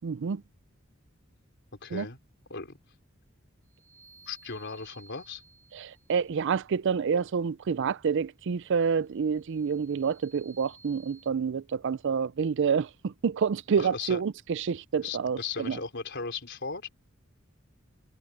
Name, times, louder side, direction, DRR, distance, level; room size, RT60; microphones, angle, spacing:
voice 1, 0.0-0.4 1.9-2.1 5.7-15.8, right 6 dB, 60° right, 0.4 m, -28 dB
voice 2, 1.8-2.2 2.5-2.8 4.3-5.4 13.8-14.2 15.0-16.9, left 4 dB, 60° left, 4.2 m, -37 dB
sound 1, 3.7-6.2 9.2-11.3, right 4 dB, 90° right, 2.7 m, -57 dB
head